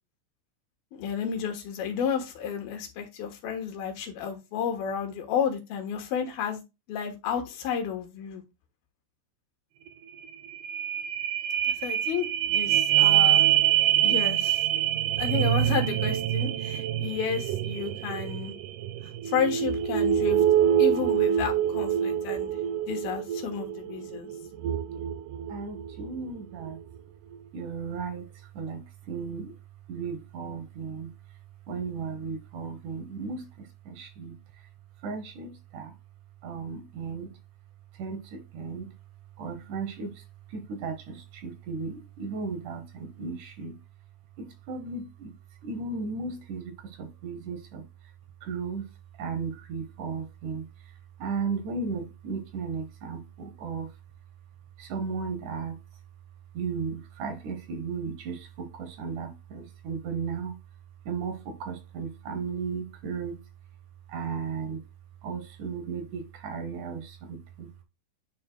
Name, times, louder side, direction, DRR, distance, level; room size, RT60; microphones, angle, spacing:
voice 1, 0.9-6.6 6.9-8.4 11.6-13.5 14.0-14.6 15.2-18.5 19.2-20.4 20.8-22.5 22.9-24.3, left 7 dB, 90° left, 3.1 m, -31 dB
sound 1, 9.9-10.0 10.2-26.2 26.7-26.8, right 11 dB, 90° right, 1.8 m, -25 dB
voice 2, 24.6-25.0 25.5-26.8 27.5-28.3 28.5-29.5 29.9-31.1 31.7-34.4 35.0-35.9 36.4-37.3 38.0-38.9 39.4-40.2 40.5-43.8 44.4-45.3 45.6-47.8 48.4-48.9 49.2-50.7 51.2-53.9 54.8-55.8 56.5-60.6 61.1-63.4 64.1-64.8 65.2-67.7, right 5 dB, 70° right, 2.3 m, -35 dB
9.9 x 5.2 x 2.3 m
omnidirectional pair, 4.1 m